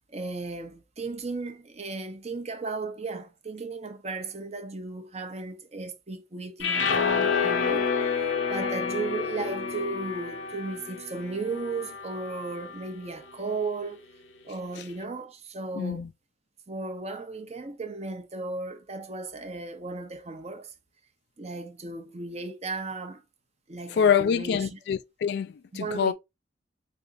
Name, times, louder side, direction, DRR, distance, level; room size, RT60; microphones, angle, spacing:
voice 1, 0.1-7.9 8.5-14.0 14.4-16.0 16.7-20.7 21.4-23.2 23.7-24.8 25.7-26.1, right 3 dB, 35° right, 0.7 m, -35 dB
sound 1, 6.6-12.9, left 5 dB, 85° left, 0.7 m, -29 dB
voice 2, 15.7-16.1 23.9-26.1, left 7 dB, 60° left, 0.3 m, -25 dB
3.8 x 3.4 x 2.6 m
head